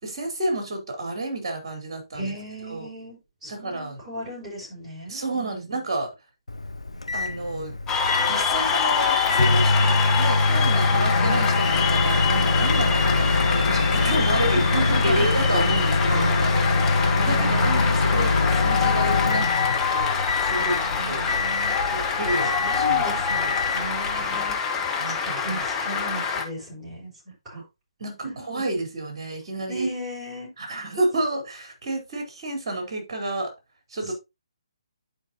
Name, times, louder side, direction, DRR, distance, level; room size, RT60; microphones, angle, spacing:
voice 1, 0.0-2.3 2.7-2.9 3.5-4.0 5.1-6.1 7.1-7.8 8.2-9.7 10.1-14.7 15.0-20.8 21.1-21.3 21.9-23.1 24.2-24.4 25.0-25.7 27.5-27.6 28.0-29.9 30.6-33.5 33.9-34.1, right 2 dB, 45° right, 4.2 m, -30 dB
voice 2, 2.1-5.6 14.5-15.6 16.1-16.8 17.2-17.7 20.4-21.7 22.6-24.5 25.2-27.1 27.4-27.6 28.2-28.3 29.7-30.5 34.0-34.1, right 1 dB, 15° right, 5.8 m, -34 dB
Microwave oven, 6.5-24.4, left 3 dB, 80° left, 0.7 m, -24 dB
Cheering / Applause, 7.9-26.4, left 6 dB, 15° left, 1.3 m, -25 dB
11.5 x 5.2 x 2.8 m
figure-of-eight pair, 140°, 3 cm